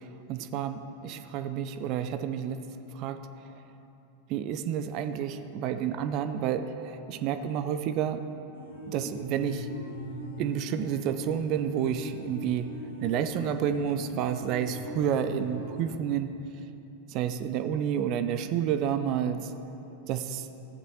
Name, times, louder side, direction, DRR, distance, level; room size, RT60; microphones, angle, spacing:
voice 1, 0.0-2.6 2.9-3.2 4.3-8.2 8.9-9.7 10.4-12.7 13.0-16.3 17.1-19.5 20.1-20.5, right 9 dB, 40° right, 9 dB, 0.4 m, -30 dB
sound 1, 8.5-16.0, left 1 dB, 70° left, 1.1 m, -40 dB
14.5 x 8.0 x 2.8 m, 2.9 s
figure-of-eight pair, 90°, 0 cm